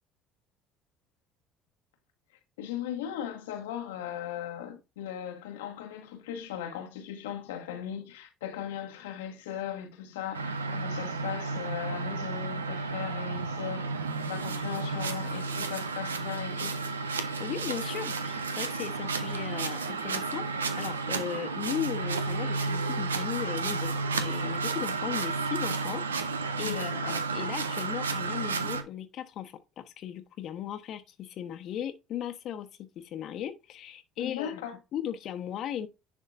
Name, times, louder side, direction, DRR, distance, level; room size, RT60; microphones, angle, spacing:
voice 1, 2.6-16.8 26.6-27.2 34.2-34.8, left 10 dB, 80° left, 1.2 m, -38 dB
sound 1, 10.3-28.8, right 4 dB, 90° right, 0.6 m, -32 dB
voice 2, 17.4-26.0 26.6-34.6 34.9-35.9, left 10 dB, 55° left, 1.1 m, -37 dB
10.5 x 3.6 x 2.5 m
hypercardioid pair, 60°, 0 cm